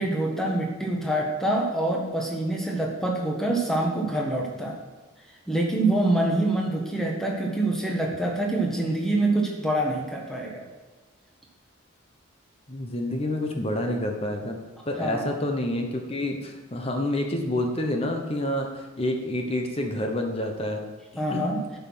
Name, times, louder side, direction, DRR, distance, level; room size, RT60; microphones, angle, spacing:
voice 1, 0.0-4.7 5.5-10.6 15.0-15.3 21.2-21.6, right 1 dB, ahead, -1 dB, 1.4 m, -25 dB
voice 2, 12.7-20.8 21.3-21.5, left 1 dB, 25° left, 3 dB, 1.0 m, -28 dB
10.5 x 5.6 x 6.2 m, 1.2 s
head